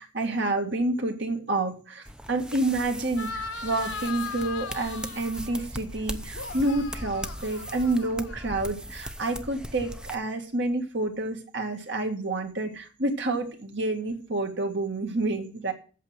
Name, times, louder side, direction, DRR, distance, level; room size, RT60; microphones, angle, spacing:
voice 1, 0.0-15.7, right 2 dB, 60° right, 4 dB, 1.9 m, -29 dB
sound 1, 2.0-10.1, equal, 5° right, 0.6 m, -39 dB
sound 2, 3.2-5.7 6.3-8.8, left 5 dB, 75° left, 1.2 m, -39 dB
8.2 x 7.4 x 7.9 m, 0.38 s
head